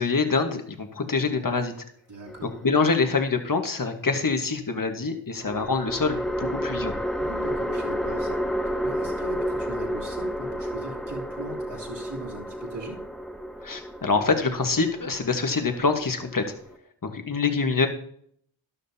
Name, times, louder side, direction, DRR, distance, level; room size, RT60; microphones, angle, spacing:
voice 1, 0.0-1.7 2.6-6.9 13.6-16.4 17.0-17.9, left 4 dB, 45° left, 5 dB, 1.5 m, -25 dB
voice 2, 2.1-2.6 7.2-8.4 8.8-13.0, right 2 dB, 60° right, -4 dB, 3.3 m, -39 dB
sound 1, 2.3-3.1 5.4-16.8, equal, ahead, 1.8 m, -31 dB
12.5 x 11.5 x 2.8 m, 0.65 s
wide cardioid pair, 65°, 47 cm